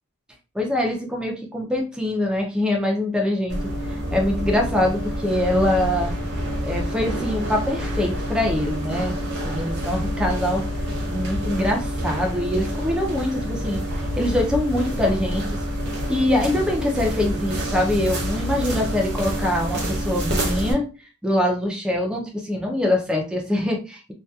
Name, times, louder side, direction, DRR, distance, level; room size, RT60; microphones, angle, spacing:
voice 1, 0.5-6.1 6.6-9.1 9.4-10.7 11.1-15.4 16.1-24.1, left 1 dB, 5° right, 1 dB, 0.3 m, -24 dB
sound 1, 3.5-20.7, equal, 50° right, 0.7 m, -27 dB
2.6 x 2.2 x 2.2 m, 0.34 s
head